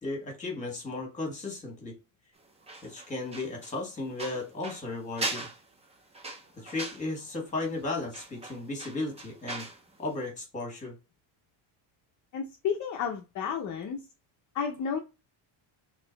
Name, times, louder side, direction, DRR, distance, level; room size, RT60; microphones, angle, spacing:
voice 1, 0.0-1.9 2.8-5.5 6.6-9.7 10.0-10.9, left 2 dB, 15° left, 1 dB, 1.5 m, -35 dB
sound 1, 2.6-9.8 10.1-10.3, right 2 dB, 15° right, 0.5 m, -40 dB
voice 2, 12.3-14.0 14.5-15.0, left 7 dB, 40° left, 2 dB, 0.6 m, -31 dB
3.8 x 3.2 x 3.9 m, 0.27 s
cardioid pair, 180°, 49 cm